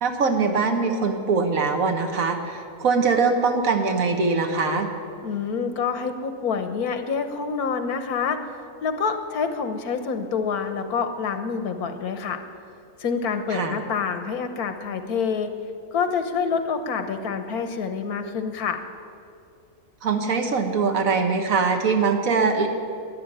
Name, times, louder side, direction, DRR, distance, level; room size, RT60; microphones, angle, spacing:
voice 1, 0.0-4.9 13.5-13.7 20.0-22.7, right 4 dB, 65° right, 5 dB, 1.7 m, -22 dB
voice 2, 5.2-8.4 8.8-12.4 13.0-15.5 15.9-18.8, left 6 dB, 85° left, 8 dB, 1.5 m, -27 dB
12.5 x 10.5 x 9.1 m, 2.4 s
omnidirectional pair, 1.6 m